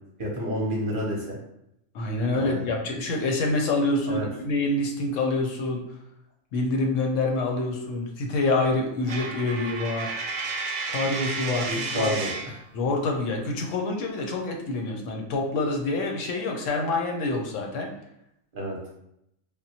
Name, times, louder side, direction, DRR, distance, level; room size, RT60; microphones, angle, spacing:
voice 1, 0.2-1.4 2.3-2.7 4.1-4.3 11.7-12.3 18.5-18.9, equal, 50° right, -3 dB, 0.7 m, -30 dB
voice 2, 1.9-5.8 6.5-10.2 10.9-12.1 12.7-17.9, left 2 dB, 75° left, 1 dB, 0.9 m, -26 dB
Coin (dropping), 9.1-12.6, right 3 dB, 90° right, 1.0 m, -32 dB
3.5 x 2.1 x 2.7 m, 0.79 s
omnidirectional pair, 1.4 m